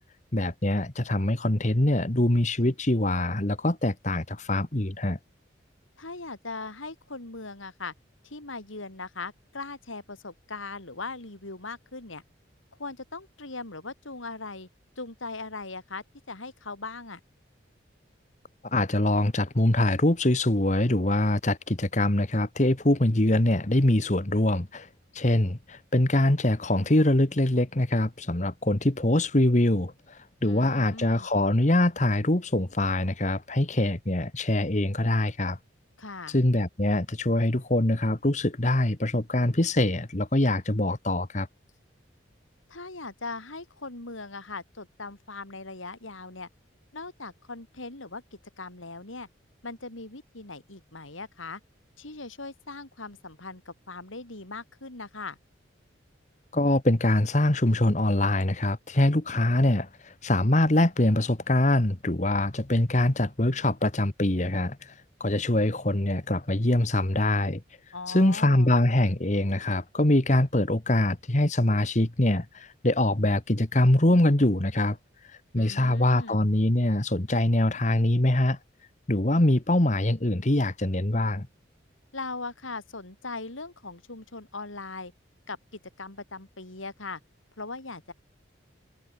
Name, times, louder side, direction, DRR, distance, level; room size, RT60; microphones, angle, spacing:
voice 1, 0.3-5.2 18.6-24.9 25.1-35.6 36.3-41.5 56.5-64.9 65.2-67.6 68.1-75.0 75.5-78.6 79.1-81.5, left 1 dB, 35° left, 1.5 m, -24 dB
voice 2, 6.0-7.9 8.2-12.2 12.8-14.7 15.0-17.2 30.4-31.3 36.0-36.4 42.7-46.5 46.9-48.2 48.6-49.3 49.6-51.6 52.0-55.4 67.9-68.7 75.6-76.4 82.1-85.1 85.5-87.2 87.6-88.1, left 3 dB, 90° left, 3.8 m, -39 dB
head